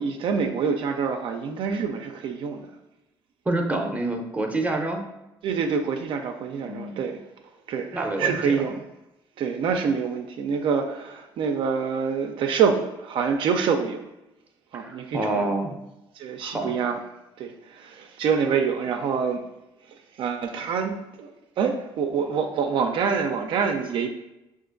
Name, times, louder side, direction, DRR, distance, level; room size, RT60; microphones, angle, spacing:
voice 1, 0.0-2.7 5.4-7.2 7.7-8.8 9.4-14.1 14.7-15.5 16.2-17.0 17.4-19.4 20.2-21.3 21.6-24.1, right 6 dB, 65° right, 4 dB, 0.4 m, -26 dB
voice 2, 3.5-5.0 6.6-7.0 7.9-8.4 14.7-15.8 16.4-16.7, right 2 dB, 15° right, 2 dB, 0.6 m, -27 dB
5.8 x 2.5 x 2.5 m, 0.94 s
cardioid pair, 100°, 9 cm